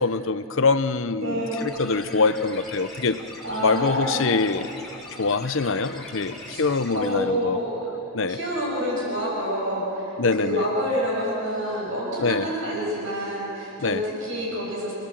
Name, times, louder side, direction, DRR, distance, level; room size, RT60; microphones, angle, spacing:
voice 1, 0.0-3.2 3.6-4.7 5.2-7.6 8.1-8.4 10.2-10.6 12.2-12.4 13.8-14.0, left 4 dB, 60° left, 12 dB, 0.7 m, -24 dB
voice 2, 1.1-1.7 3.4-4.3 6.5-6.6 6.9-7.7 8.3-14.9, equal, 60° right, -3 dB, 6.3 m, -28 dB
sound 1, 1.5-7.1, left 2 dB, ahead, 3.7 m, -41 dB
27.5 x 19.0 x 7.6 m, 2.9 s
head